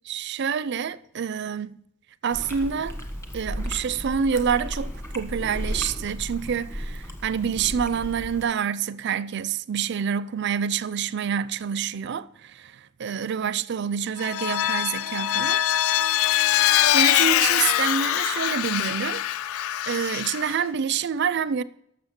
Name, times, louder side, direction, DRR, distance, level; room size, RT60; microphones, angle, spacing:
voice 1, 0.1-1.8 2.2-2.9 3.3-15.6 16.6-19.2 19.9-21.6, right 7 dB, 55° right, 0.4 m, -27 dB
Chewing mastication, 2.3-8.4, equal, 15° left, 1.5 m, -34 dB
Vehicle, 14.2-20.6, left 13 dB, 85° left, 0.3 m, -23 dB
13.0 x 6.8 x 5.9 m
head